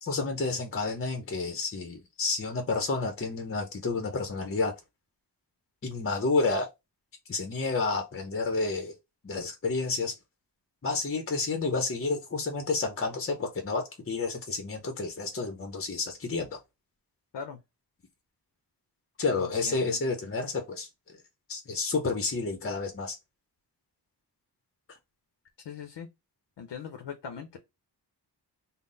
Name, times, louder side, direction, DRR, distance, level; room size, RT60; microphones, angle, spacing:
voice 1, 0.0-4.7 5.8-6.7 7.3-8.9 9.2-10.1 10.8-16.6 19.2-20.9 21.5-23.2, left 3 dB, 35° left, 0.6 m, -30 dB
voice 2, 19.3-20.0 25.6-26.1 26.6-27.6, left 6 dB, 85° left, 0.7 m, -40 dB
3.8 x 2.0 x 3.8 m
wide cardioid pair, 105°, 42 cm